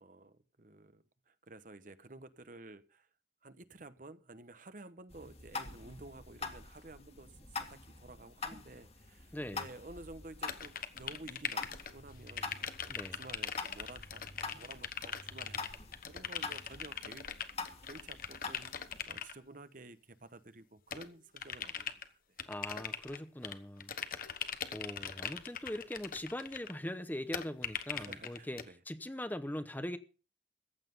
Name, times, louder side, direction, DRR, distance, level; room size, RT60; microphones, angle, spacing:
voice 1, 0.0-3.1 3.4-15.7 16.0-17.3 17.6-18.8 19.0-22.2 27.9-28.8, right 2 dB, 50° right, 1.1 m, -52 dB
sound 1, 5.1-19.0, left 4 dB, 35° left, 2.0 m, -45 dB
voice 2, 9.3-9.7 12.9-13.2 22.5-23.9 24.7-30.0, left 1 dB, 10° left, 0.8 m, -41 dB
sound 2, 10.5-12.0 12.3-19.3 20.9-22.0 22.4-23.6 23.8-26.7 27.3-28.6, left 8 dB, 50° left, 1.2 m, -41 dB
15.0 x 10.0 x 5.4 m
head